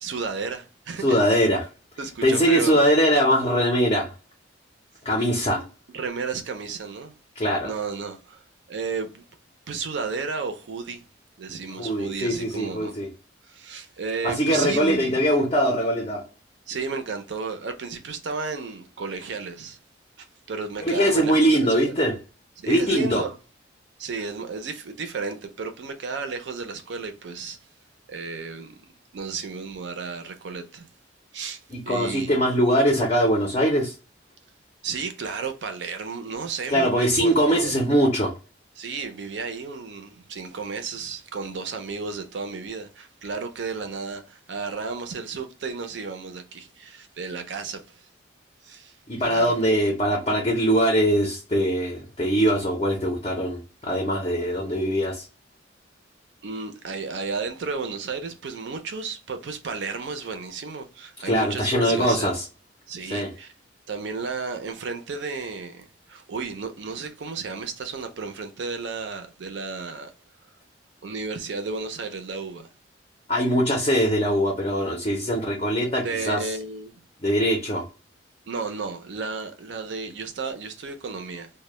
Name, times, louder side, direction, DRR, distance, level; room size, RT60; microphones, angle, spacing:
voice 1, 0.0-1.3 2.0-2.9 5.2-5.3 5.6-5.7 5.9-7.2 7.6-8.4 8.7-9.3 9.7-11.0 11.4-12.9 13.5-15.3 16.7-19.8 20.2-21.9 22.6-23.4 24.0-27.6 28.1-28.7 29.1-30.9 31.3-32.4 34.8-37.8 38.8-48.1 48.6-49.0 49.2-49.6 56.4-62.3 62.9-63.5 63.9-70.1 71.0-72.7 75.8-76.9 78.5-81.5, right 4 dB, 65° right, 0.4 m, -33 dB
voice 2, 1.0-1.7 2.2-4.1 5.0-5.6 7.4-7.7 11.8-13.1 14.2-16.2 20.8-22.2 22.7-23.2 31.7-33.9 36.7-38.3 49.1-55.3 61.2-62.4 63.1-63.3 73.3-76.4 77.2-77.8, equal, 30° left, 0.5 m, -22 dB
2.1 x 2.0 x 3.0 m
head